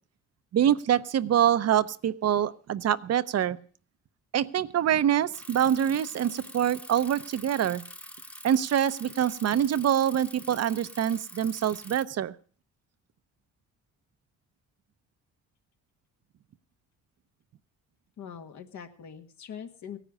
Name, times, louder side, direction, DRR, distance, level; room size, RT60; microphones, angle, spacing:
voice 1, 0.5-3.6 4.3-7.8 8.4-12.3, right 10 dB, 55° right, 14 dB, 0.7 m, -25 dB
Bicycle, 5.3-12.0, equal, 5° left, 1.0 m, -45 dB
voice 2, 18.2-20.0, left 8 dB, 70° left, 6 dB, 1.8 m, -42 dB
17.0 x 10.0 x 6.4 m, 0.43 s
cardioid pair, 90°, 30 cm